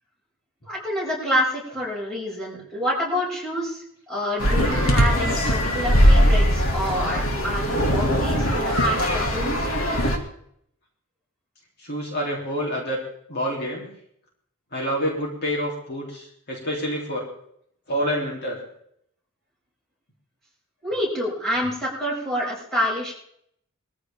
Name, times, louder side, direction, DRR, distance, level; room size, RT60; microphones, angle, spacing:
voice 1, 0.6-9.9 20.8-23.1, equal, 5° left, -6 dB, 6.5 m, -27 dB
sound 1, 4.4-10.2, equal, 75° left, 2.5 m, -20 dB
voice 2, 11.8-13.0 13.3-13.9 14.7-17.3 17.9-18.6, equal, 50° left, -2 dB, 3.4 m, -27 dB
22.0 x 14.5 x 3.6 m, 0.70 s
head